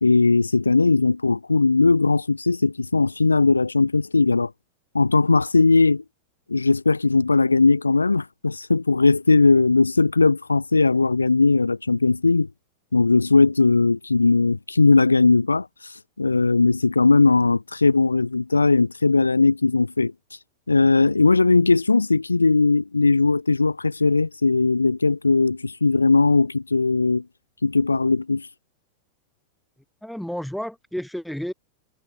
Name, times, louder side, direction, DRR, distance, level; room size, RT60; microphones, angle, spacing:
voice 1, 0.0-4.5 4.9-6.0 6.5-12.5 12.9-20.1 20.7-27.2 27.6-28.5, left 3 dB, 80° left, 0.9 m, -19 dB
voice 2, 30.0-31.5, equal, ahead, 2.7 m, -31 dB
figure-of-eight pair, 90°, 0 cm